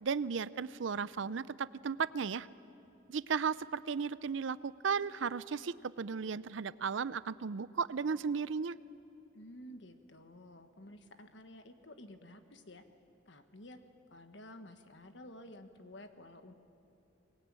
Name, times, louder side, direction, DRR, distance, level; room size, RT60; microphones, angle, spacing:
voice 1, 0.0-2.5 3.1-8.7, right 6 dB, 70° right, 18 dB, 0.5 m, -35 dB
voice 2, 9.3-12.8 13.3-13.8 14.1-16.5, left 1 dB, 60° left, 8 dB, 1.4 m, -52 dB
23.5 x 20.5 x 8.9 m, 2.9 s
head